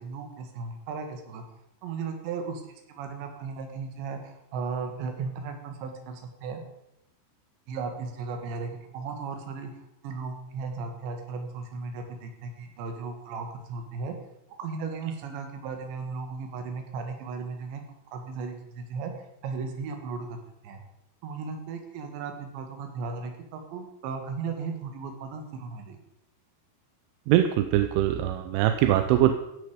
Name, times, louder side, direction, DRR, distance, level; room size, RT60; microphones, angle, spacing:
voice 1, 0.0-1.4 1.8-6.6 7.7-14.2 14.6-17.8 18.1-20.4 20.6-20.8 21.2-26.0, right 4 dB, 70° right, 5 dB, 4.1 m, -36 dB
voice 2, 27.3-29.3, right 12 dB, 85° right, 8 dB, 3.2 m, -22 dB
16.0 x 10.5 x 5.1 m, 0.85 s
omnidirectional pair, 5.5 m